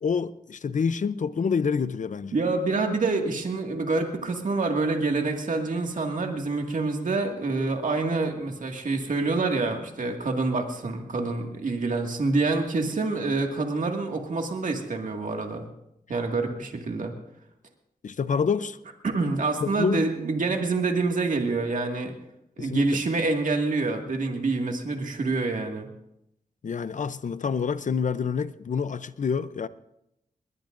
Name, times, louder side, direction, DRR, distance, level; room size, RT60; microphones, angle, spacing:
voice 1, 0.0-2.4 18.0-18.8 19.6-20.1 22.6-23.0 26.6-29.7, left 6 dB, 55° left, 0.6 m, -27 dB
voice 2, 2.3-15.6 16.1-17.1 19.0-22.1 22.6-25.9, right 3 dB, 60° right, 2.0 m, -27 dB
21.0 x 20.5 x 2.6 m
cardioid pair, 75°, 15 cm